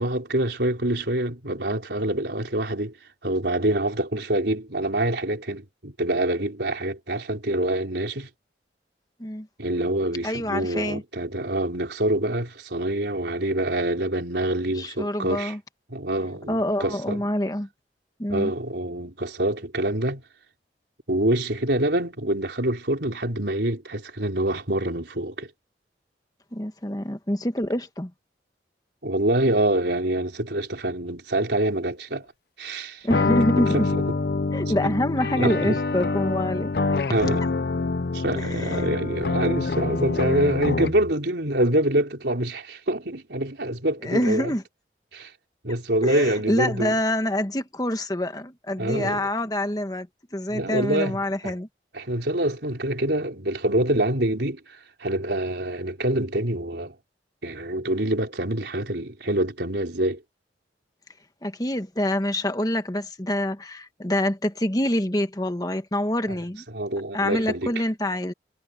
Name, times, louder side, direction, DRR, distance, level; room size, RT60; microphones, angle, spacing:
voice 1, 0.0-2.9 3.2-8.3 9.6-15.5 15.9-17.2 18.3-20.2 21.1-25.5 29.0-32.3 32.6-33.1 33.7-33.9 34.8-34.9 35.4-35.8 37.1-37.4 38.1-44.5 45.1-45.3 45.6-47.0 48.8-49.3 50.5-51.2 51.4-51.5 51.9-57.0 57.4-60.2 66.7-67.7, right 1 dB, 75° right, 3.8 m, -26 dB
voice 2, 10.2-11.0 14.7-15.6 16.5-17.7 18.2-18.5 26.5-28.1 33.0-33.9 34.5-36.7 37.1-37.2 38.4-38.8 44.0-44.6 46.0-50.1 50.3-51.7 61.4-66.6 67.1-68.3, left 1 dB, 20° left, 1.5 m, -26 dB
sound 1, 33.1-41.1, left 3 dB, 60° left, 0.6 m, -26 dB
head